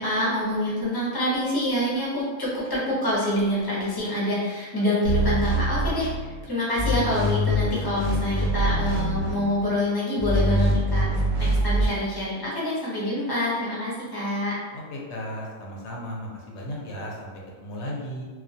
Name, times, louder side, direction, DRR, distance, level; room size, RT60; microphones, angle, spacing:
voice 1, 0.0-14.6, left 1 dB, 25° left, -8 dB, 0.5 m, -26 dB
sound 1, 5.0-6.4 6.8-9.6 10.2-11.9, equal, 70° right, 0.8 m, -24 dB
voice 2, 14.7-18.2, equal, 65° left, -2 dB, 0.8 m, -35 dB
2.2 x 2.2 x 2.6 m, 1.4 s
omnidirectional pair, 1.4 m